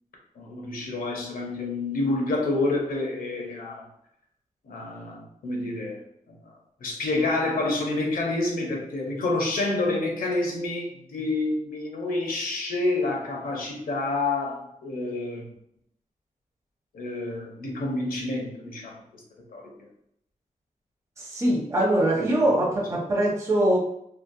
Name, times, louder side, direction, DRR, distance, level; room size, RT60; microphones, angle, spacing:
voice 1, 0.4-3.9 4.6-6.0 6.3-6.4 6.8-15.5 16.9-19.2 19.5-19.7, left 2 dB, 85° left, 0 dB, 0.7 m, -28 dB
voice 2, 21.2-23.8, right 1 dB, 20° right, -2 dB, 0.5 m, -23 dB
2.8 x 2.0 x 2.6 m, 0.75 s
wide cardioid pair, 85°, 14 cm